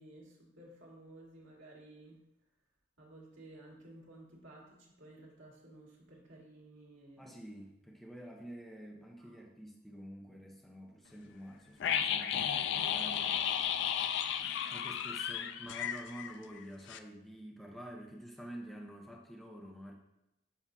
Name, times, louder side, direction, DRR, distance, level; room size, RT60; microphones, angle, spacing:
voice 1, 0.0-2.2 3.0-7.3 9.2-9.4, right 1 dB, 75° right, -4 dB, 2.0 m, -55 dB
voice 2, 7.2-13.5 14.7-19.9, equal, ahead, -1 dB, 0.7 m, -48 dB
sound 1, 11.8-16.6 16.9-17.0, left 9 dB, 60° left, 0.3 m, -33 dB
7.3 x 5.9 x 2.7 m, 0.89 s
head